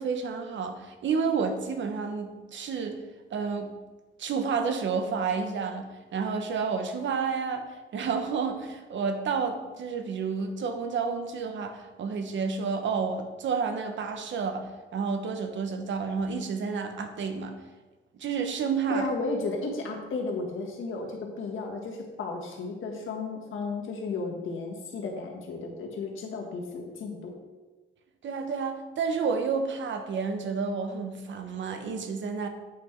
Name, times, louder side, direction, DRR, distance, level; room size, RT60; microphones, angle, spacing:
voice 1, 0.0-3.0 3.3-3.7 4.2-7.7 7.9-17.5 18.2-19.1 28.2-32.5, right 5 dB, 65° right, 6 dB, 1.0 m, -30 dB
voice 2, 18.9-27.4, left 3 dB, 75° left, 1 dB, 1.7 m, -34 dB
8.4 x 5.9 x 4.6 m, 1.2 s
wide cardioid pair, 150°, 21 cm